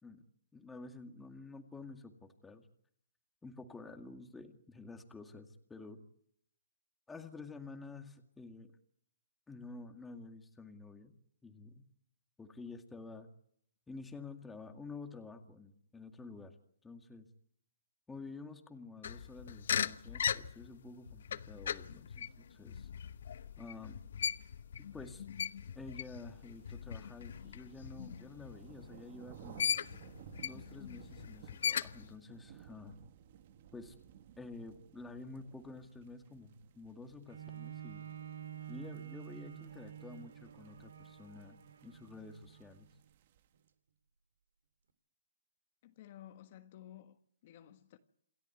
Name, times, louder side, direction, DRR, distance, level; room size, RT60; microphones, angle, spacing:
voice 1, 0.5-2.7 3.4-6.0 7.1-8.7 9.5-11.2 11.4-11.9 12.4-13.3 13.9-16.5 16.8-17.3 18.1-22.9 23.6-24.0 24.8-25.2 25.8-29.7 30.4-33.0 33.7-33.9 34.4-38.1 38.7-42.9, left 3 dB, 5° left, 2.1 m, -50 dB
sound 1, 19.0-29.1 29.6-32.1, left 8 dB, 65° left, 1.0 m, -39 dB
sound 2, 26.0-43.6, right 10 dB, 45° right, 1.5 m, -58 dB
Bowed string instrument, 37.3-42.9 43.5-43.6, right 11 dB, 80° right, 2.9 m, -49 dB
voice 2, 45.8-48.0, left 12 dB, 45° left, 1.5 m, -54 dB
28.0 x 13.0 x 9.4 m
hypercardioid pair, 155°, 0 cm